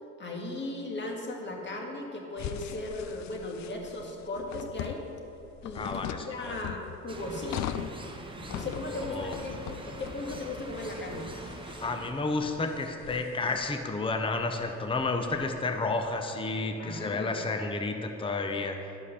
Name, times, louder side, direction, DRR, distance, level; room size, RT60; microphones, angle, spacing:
voice 1, 0.2-5.0 5.6-7.8 8.4-11.3 16.8-17.4, left 2 dB, 35° left, 0 dB, 1.8 m, -37 dB
sound 1, 2.4-16.1, left 11 dB, 65° left, 0.4 m, -41 dB
voice 2, 5.7-6.5 9.1-9.3 11.8-18.8, left 3 dB, 15° left, 6 dB, 0.7 m, -31 dB
sound 2, 7.1-12.1, right 2 dB, 15° right, 1.1 m, -43 dB
11.5 x 5.4 x 6.6 m, 3.0 s
cardioid pair, 90°, 30 cm